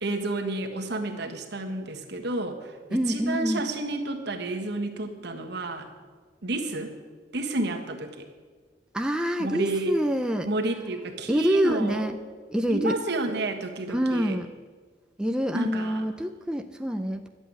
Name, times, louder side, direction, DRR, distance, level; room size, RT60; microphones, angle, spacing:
voice 1, 0.0-5.9 6.4-6.9 7.3-8.2 9.4-9.9 10.4-12.0 12.7-14.4 15.5-16.0, right 2 dB, 65° right, 3 dB, 1.6 m, -30 dB
voice 2, 2.9-3.6 8.9-10.5 11.3-12.2 12.5-13.0 13.9-14.5 15.2-17.3, equal, 5° right, 4 dB, 0.5 m, -26 dB
11.5 x 8.0 x 9.2 m, 1.5 s
head